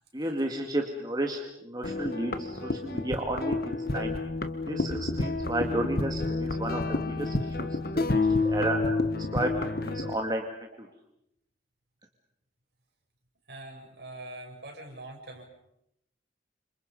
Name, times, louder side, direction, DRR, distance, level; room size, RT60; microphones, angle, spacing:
voice 1, 0.1-4.2 4.7-7.7 8.1-8.8 9.1-9.5 9.8-10.4 10.8-10.9, right 1 dB, 20° right, 2 dB, 2.2 m, -32 dB
sound 1, 1.8-10.1, left 2 dB, 55° left, 1.7 m, -29 dB
voice 2, 13.5-15.5, right 2 dB, 65° right, 1 dB, 7.1 m, -43 dB
29.5 x 27.0 x 5.5 m, 0.77 s
head